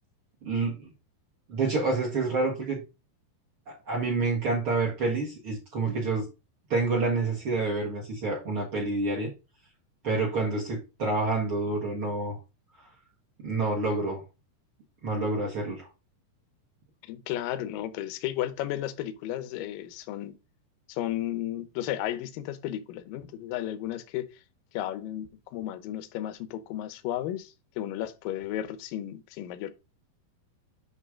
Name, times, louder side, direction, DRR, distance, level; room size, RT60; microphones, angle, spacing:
voice 1, 0.4-0.9 1.5-2.8 3.7-6.3 6.7-9.3 10.0-12.4 13.4-14.2 15.0-15.9, right 3 dB, 55° right, 1.5 m, -28 dB
voice 2, 17.0-20.4 20.9-24.4 24.7-29.7, left 12 dB, 80° left, 2.1 m, -34 dB
8.1 x 3.3 x 6.1 m
omnidirectional pair, 5.0 m